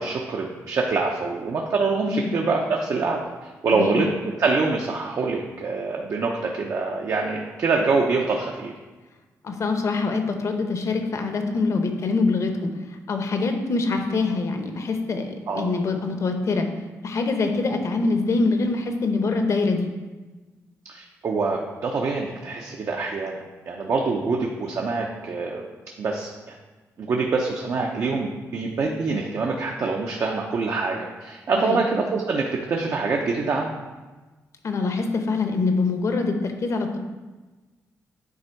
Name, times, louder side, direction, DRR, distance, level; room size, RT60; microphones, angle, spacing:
voice 1, 0.0-8.7 15.5-15.7 20.9-25.7 26.0-26.6 27.0-33.8, right 4 dB, 60° right, 0 dB, 0.8 m, -25 dB
voice 2, 3.7-4.0 9.4-12.7 13.1-16.7 17.0-19.9 31.6-31.8 34.6-37.0, left 3 dB, 55° left, 5 dB, 0.9 m, -24 dB
9.5 x 3.5 x 4.6 m, 1.2 s
cardioid pair, 80°, 6 cm